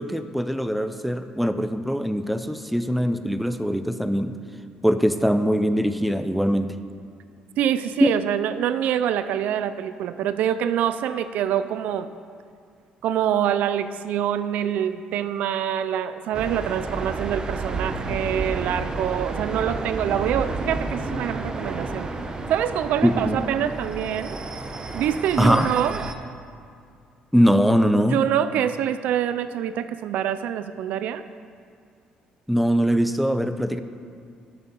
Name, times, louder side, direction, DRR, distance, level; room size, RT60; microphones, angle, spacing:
voice 1, 0.0-4.4 4.8-6.8 8.0-8.1 23.0-23.4 25.4-25.7 27.3-28.2 32.5-33.8, equal, ahead, 9 dB, 0.6 m, -21 dB
voice 2, 7.6-12.1 13.0-22.1 22.5-24.4 24.9-26.0 27.9-31.2, right 10 dB, 75° right, 12 dB, 0.4 m, -25 dB
sound 1, 16.3-26.1, right 3 dB, 30° right, 0.8 m, -31 dB
12.5 x 6.7 x 5.4 m, 2.3 s
cardioid pair, 100°, 3 cm